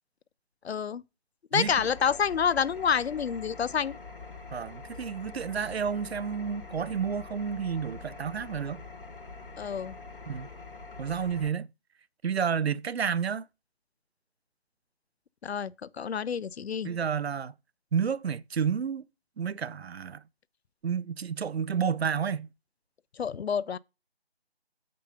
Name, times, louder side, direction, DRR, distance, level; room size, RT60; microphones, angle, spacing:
voice 1, 0.6-1.0 1.5-4.0 9.6-10.0 15.4-16.9 23.2-23.8, left 7 dB, 85° left, 0.5 m, -28 dB
Engine, 1.6-11.5, left 3 dB, 60° left, 1.3 m, -45 dB
voice 2, 4.5-8.8 10.3-10.5 11.0-11.7 12.2-13.4 16.8-17.5 17.9-19.1 19.4-20.2 20.8-22.5, right 7 dB, 80° right, 0.5 m, -30 dB
6.6 x 5.3 x 5.5 m
figure-of-eight pair, 175°, 31 cm